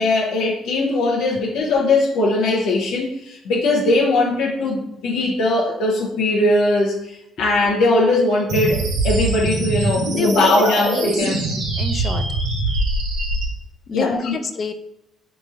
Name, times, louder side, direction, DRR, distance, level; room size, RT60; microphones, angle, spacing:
voice 1, 0.0-7.0 7.4-11.5 13.9-14.3, left 2 dB, 85° left, -1 dB, 0.7 m, -20 dB
sound 1, 8.5-13.5, right 2 dB, 80° right, 1.1 m, -22 dB
voice 2, 10.1-10.5 10.9-11.1 11.8-12.2 13.9-14.7, left 4 dB, 35° left, 8 dB, 0.3 m, -26 dB
2.9 x 2.5 x 3.9 m, 0.80 s
cardioid pair, 150°, 0 cm